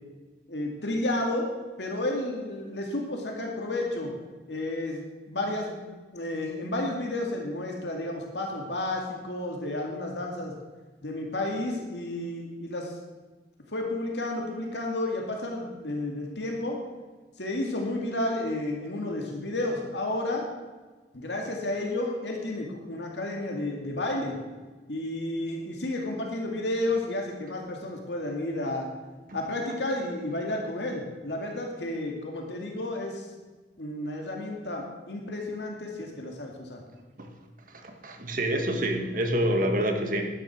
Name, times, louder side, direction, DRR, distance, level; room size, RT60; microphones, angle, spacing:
voice 1, 0.5-1.5 1.8-4.1 4.5-5.0 5.3-5.8 6.1-10.5 11.0-12.9 13.7-16.8 17.4-20.5 21.1-24.4 24.9-28.9 29.3-33.2 33.8-36.8, left 1 dB, 80° left, 1 dB, 2.2 m, -31 dB
voice 2, 37.7-40.2, right 1 dB, 50° right, 4 dB, 1.7 m, -27 dB
11.5 x 10.0 x 6.1 m, 1.3 s
head